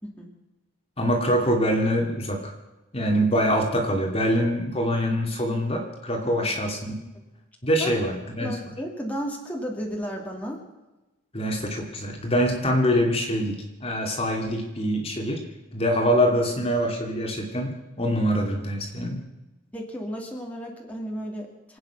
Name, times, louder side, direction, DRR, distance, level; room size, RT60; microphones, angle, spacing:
voice 1, 1.0-2.5 2.9-7.0 7.6-8.6 11.3-15.4 15.7-19.2, equal, 30° left, 1 dB, 2.4 m, -24 dB
voice 2, 6.2-6.6 7.8-8.0 8.4-10.6 19.7-21.8, equal, 5° left, -1 dB, 2.5 m, -34 dB
27.0 x 9.3 x 5.8 m, 1.1 s
head